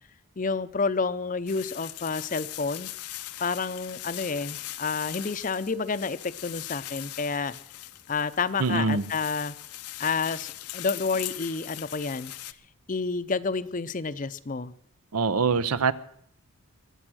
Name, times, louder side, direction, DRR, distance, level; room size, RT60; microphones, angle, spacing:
voice 1, 0.4-2.9 3.4-7.5 8.1-9.5 10.0-12.3 12.9-14.7, left 4 dB, 35° left, 0.5 m, -29 dB
sound 1, 1.5-12.5, left 15 dB, 90° left, 0.7 m, -40 dB
voice 2, 8.6-9.0 15.1-15.9, right 4 dB, 85° right, 0.7 m, -24 dB
23.0 x 8.3 x 6.2 m
head